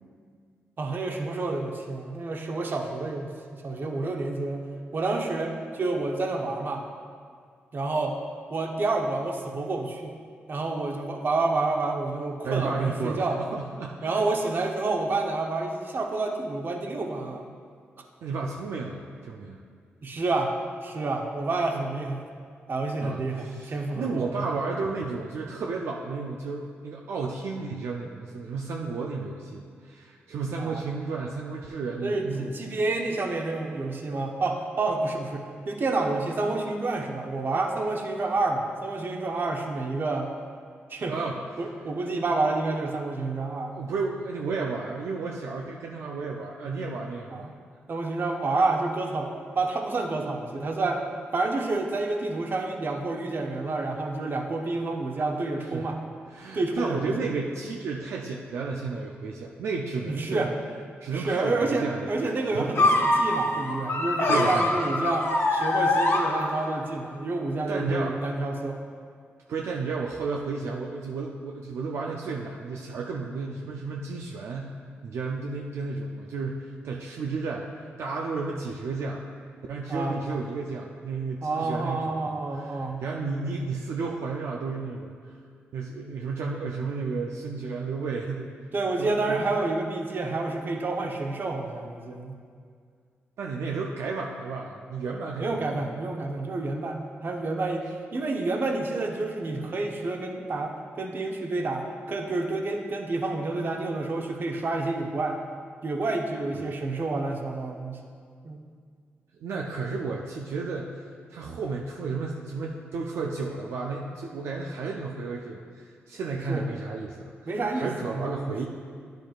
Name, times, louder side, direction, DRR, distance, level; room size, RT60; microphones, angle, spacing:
voice 1, 0.8-4.6 4.9-6.9 7.7-8.2 8.5-10.2 10.5-13.4 14.0-17.5 20.0-20.6 20.8-22.2 22.7-24.5 30.6-30.8 32.0-40.3 40.9-41.1 41.6-43.8 47.3-47.5 47.9-51.0 51.3-56.0 56.5-57.3 60.0-60.5 61.1-68.8 79.9-80.2 81.4-83.0 88.7-92.4 95.4-105.4 105.8-108.0 108.4-108.6 116.5-116.7 117.5-118.5, right 3 dB, 50° right, 2 dB, 0.9 m, -29 dB
voice 2, 12.4-14.2 18.2-19.6 21.7-21.9 23.0-32.5 41.1-41.4 41.8-42.0 43.7-47.5 55.7-55.9 56.3-60.5 61.0-62.1 62.5-62.9 64.3-64.7 67.7-68.2 69.5-74.7 75.0-79.2 79.7-85.3 85.7-88.5 89.0-89.4 93.4-95.8 106.5-106.7 109.4-118.7, right 4 dB, 75° right, -1 dB, 0.5 m, -33 dB
sound 1, 62.7-66.9, left 2 dB, 65° left, 0.9 m, -24 dB
10.0 x 6.5 x 2.5 m, 2.1 s
cardioid pair, 60°, 5 cm